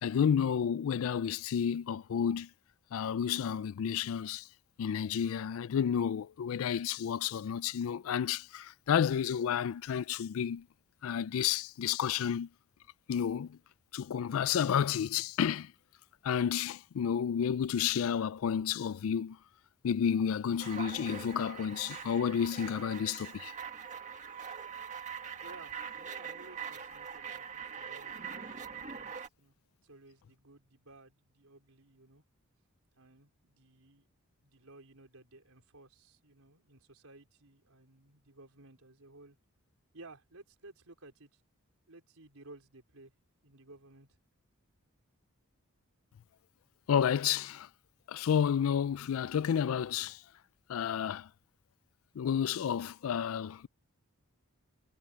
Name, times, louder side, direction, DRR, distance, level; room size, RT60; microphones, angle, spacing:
voice 1, 0.0-2.5 2.9-4.5 4.8-10.7 11.0-12.5 13.1-13.6 13.9-15.7 16.2-19.4 19.8-23.5 46.9-47.7 48.1-50.2 50.7-51.3 52.2-53.7, left 8 dB, 70° left, 0.3 m, -31 dB
sound 1, 20.6-29.3, right 6 dB, 35° right, 1.7 m, -43 dB
voice 2, 25.4-32.2 33.0-34.1 34.4-39.4 39.9-41.4 41.9-43.1 43.4-44.1, right 2 dB, 80° right, 4.3 m, -56 dB
head